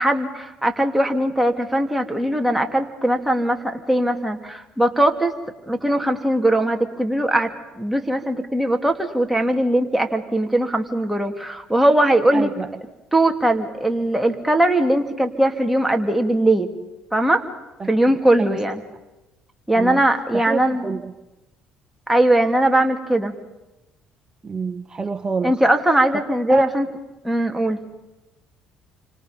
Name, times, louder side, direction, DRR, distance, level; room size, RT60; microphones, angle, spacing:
voice 1, 0.0-5.3 5.7-7.5 7.8-12.5 13.1-16.7 17.1-17.4 17.9-18.8 19.7-20.9 22.1-23.3 25.4-26.9 27.2-27.8, right 1 dB, 5° right, 3 dB, 3.4 m, -20 dB
voice 2, 12.3-12.7 17.8-18.6 19.8-20.0 20.3-21.1 24.4-25.6 26.1-26.7, right 5 dB, 30° right, 7 dB, 1.4 m, -28 dB
29.5 x 26.0 x 5.6 m, 1.0 s
supercardioid pair, 65°, 3 cm